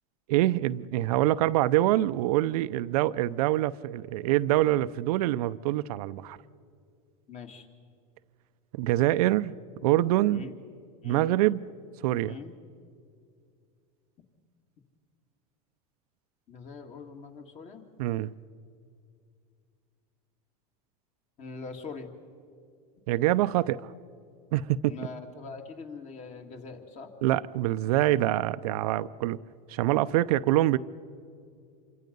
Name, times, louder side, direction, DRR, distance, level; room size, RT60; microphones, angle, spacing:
voice 1, 0.3-6.4 8.7-9.5 9.8-10.5 11.0-11.7 12.0-12.4 18.0-18.3 23.1-23.9 24.5-25.1 27.2-29.4 29.7-30.8, right 15 dB, 75° right, 0.6 m, -25 dB
voice 2, 7.3-7.7 10.3-10.6 11.0-11.3 12.2-12.5 16.5-17.8 21.4-22.1 24.8-27.1, left 4 dB, 35° left, 2.4 m, -42 dB
27.5 x 24.5 x 5.4 m
supercardioid pair, 115°, 20 cm